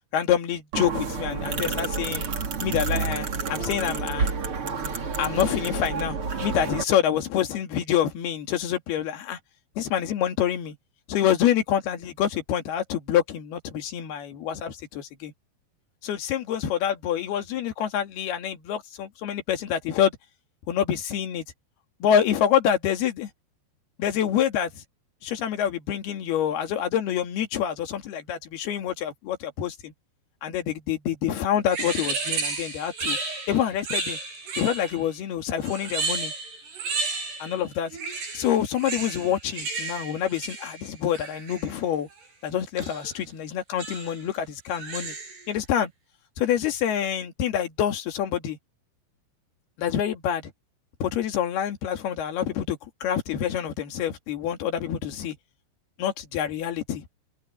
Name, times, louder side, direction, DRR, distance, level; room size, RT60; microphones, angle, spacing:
voice 1, 0.1-2.2 2.6-4.3 5.2-6.2 6.4-9.4 9.8-10.8 11.1-15.3 16.0-20.1 20.7-21.4 22.0-23.3 24.0-24.8 25.2-29.9 30.4-33.2 33.5-34.2 34.6-36.3 37.4-37.9 38.3-42.1 42.4-45.2 45.5-45.9 46.4-48.6 49.8-50.5 51.0-55.4 56.0-57.1, left 9 dB, 70° left, 4.0 m, -26 dB
sound 1, 0.7-6.8, right 5 dB, 35° right, 2.9 m, -29 dB
sound 2, 31.7-35.1 35.6-37.6 37.9-41.7 42.8-43.1 43.8-44.2 44.7-45.5, right 4 dB, 75° right, 6.8 m, -32 dB
omnidirectional pair, 4.8 m